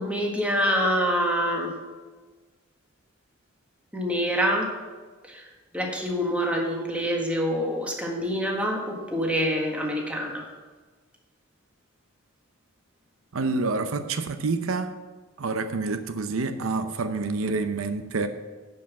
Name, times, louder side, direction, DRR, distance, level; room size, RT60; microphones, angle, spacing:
voice 1, 0.0-1.8 3.9-4.8 5.2-10.5, equal, 5° right, 0 dB, 1.6 m, -26 dB
voice 2, 13.3-14.9 15.4-18.3, right 3 dB, 80° right, 9 dB, 0.7 m, -27 dB
11.0 x 5.5 x 7.1 m, 1.4 s
head